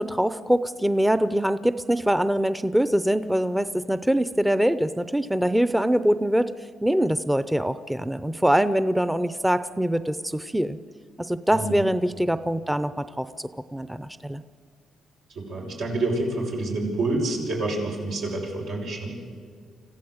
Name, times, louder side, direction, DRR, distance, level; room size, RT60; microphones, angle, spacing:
voice 1, 0.0-6.5 6.8-10.8 11.2-14.4, equal, 5° right, 13 dB, 0.6 m, -23 dB
voice 2, 11.5-11.8 15.4-19.2, right 2 dB, 85° right, -2 dB, 5.9 m, -28 dB
26.0 x 15.0 x 8.0 m, 2.1 s
cardioid pair, 90°, 0 cm